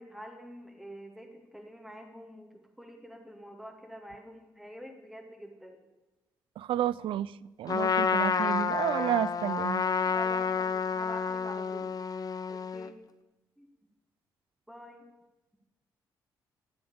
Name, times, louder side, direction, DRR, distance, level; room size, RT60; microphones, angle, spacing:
voice 1, 0.0-5.8 10.0-11.9 12.5-13.0 13.6-13.7 14.7-15.0, equal, ahead, 2 dB, 2.4 m, -47 dB
voice 2, 6.6-7.3 7.6-9.8, right 11 dB, 75° right, 19 dB, 0.4 m, -31 dB
Trumpet, 7.7-12.9, left 6 dB, 45° left, 0.8 m, -29 dB
13.0 x 7.7 x 7.2 m, 1.1 s
supercardioid pair, 55°, 9 cm